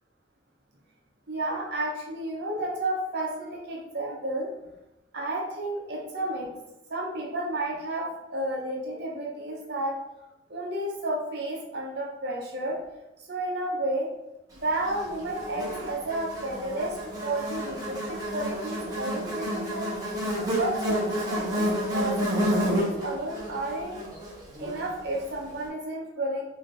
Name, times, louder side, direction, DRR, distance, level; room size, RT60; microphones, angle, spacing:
voice 1, 1.3-4.5 5.1-6.5 6.9-9.9 10.5-12.8 13.3-14.1 14.6-19.9 20.5-24.0 24.6-26.4, right 1 dB, 65° right, -2 dB, 0.8 m, -32 dB
Buzz, 14.8-25.3, equal, 20° right, 1.1 m, -30 dB
4.1 x 2.8 x 3.3 m, 0.94 s
head